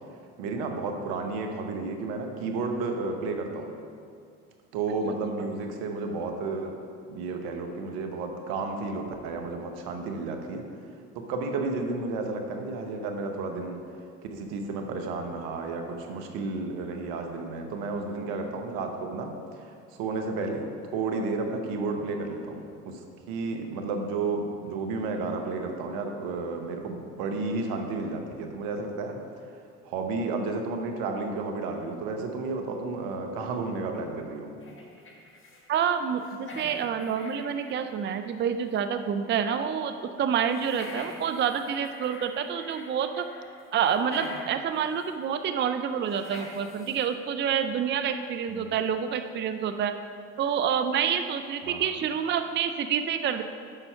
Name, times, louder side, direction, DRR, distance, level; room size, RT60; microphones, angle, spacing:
voice 1, 0.4-3.7 4.7-6.7 7.1-10.7 11.1-13.8 14.3-19.7 19.9-20.7 20.9-29.2 29.8-34.5 48.5-48.8 51.6-52.0, right 3 dB, 75° right, 4 dB, 1.0 m, -32 dB
sound 1, 34.6-35.7 35.9-38.4 38.7-38.8 40.5-42.9 43.1-44.6 45.0-45.1 46.1-47.1, left 1 dB, 35° left, 1.5 m, -45 dB
voice 2, 35.7-43.2 43.7-49.9 50.4-53.4, right 7 dB, 30° right, 8 dB, 0.5 m, -28 dB
7.0 x 5.5 x 5.5 m, 2.3 s
hypercardioid pair, 65°, 36 cm